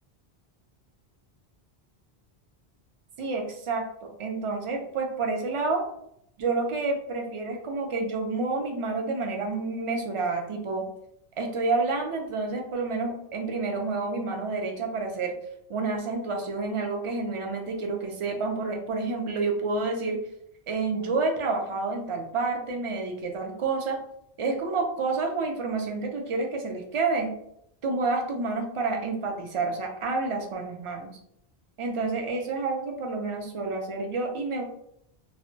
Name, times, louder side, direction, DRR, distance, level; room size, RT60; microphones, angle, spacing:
voice 1, 3.2-5.8 6.4-10.9 11.4-15.3 15.7-20.2 20.7-24.0 24.4-27.3 27.8-31.1 31.8-34.6, right 3 dB, 50° right, 2 dB, 0.4 m, -29 dB
2.1 x 2.1 x 3.7 m, 0.74 s
omnidirectional pair, 1.1 m